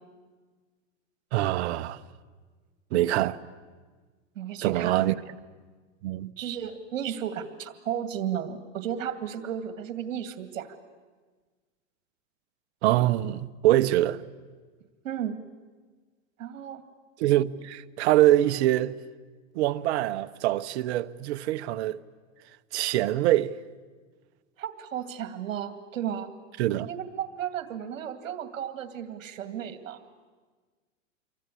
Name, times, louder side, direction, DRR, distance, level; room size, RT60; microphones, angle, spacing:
voice 1, 1.3-2.0 2.9-3.4 4.6-5.1 6.0-6.3 12.8-14.2 17.2-19.0 19.5-22.0 22.7-23.5 26.6-26.9, right 14 dB, 55° right, 1.1 m, -24 dB
voice 2, 4.4-5.1 6.4-10.7 15.0-15.4 16.4-16.8 24.6-26.3 26.8-30.0, right 9 dB, 75° right, 2.5 m, -34 dB
28.5 x 23.5 x 8.5 m
hypercardioid pair, 130°, 39 cm